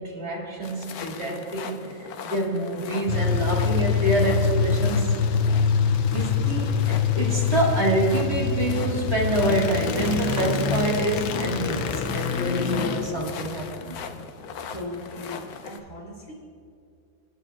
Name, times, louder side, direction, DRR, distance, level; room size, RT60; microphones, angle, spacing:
voice 1, 0.0-5.1 6.1-14.0, right 1 dB, 35° right, -2 dB, 2.0 m, -27 dB
sound 1, 0.6-15.8, left 6 dB, 65° left, 1.1 m, -40 dB
sound 2, 3.1-14.2, left 6 dB, 85° left, 1.4 m, -25 dB
sound 3, 6.1-6.9 7.4-7.5 8.1-8.2 10.0-10.9 12.3-13.0 13.9-14.0, right 2 dB, 60° right, 0.4 m, -41 dB
voice 2, 14.7-16.3, left 2 dB, 20° left, -4 dB, 3.2 m, -38 dB
28.5 x 9.6 x 2.4 m, 2.4 s
omnidirectional pair, 2.0 m